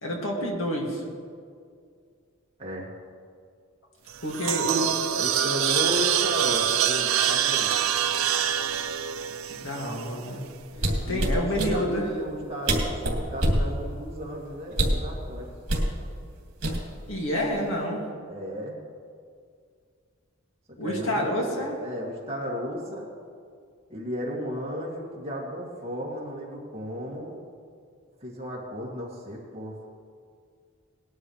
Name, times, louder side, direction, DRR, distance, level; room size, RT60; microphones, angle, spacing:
voice 1, 0.0-1.0 4.2-4.9 9.5-10.4 11.1-12.0 17.1-18.0 20.8-21.8, equal, 65° left, -1 dB, 2.4 m, -28 dB
voice 2, 2.6-2.9 5.1-7.7 11.1-15.5 18.3-18.8 20.7-23.1 23.9-27.4 28.2-29.9, equal, 30° right, -4 dB, 2.4 m, -34 dB
sound 1, 4.1-10.4, right 9 dB, 80° right, 0.7 m, -25 dB
sound 2, 10.7-11.7 12.4-12.5 12.7-13.7 14.7-15.1 15.7-15.9 16.6-17.1 17.4-17.7, right 1 dB, 60° right, 2.7 m, -24 dB
19.5 x 11.5 x 3.3 m, 2.2 s
head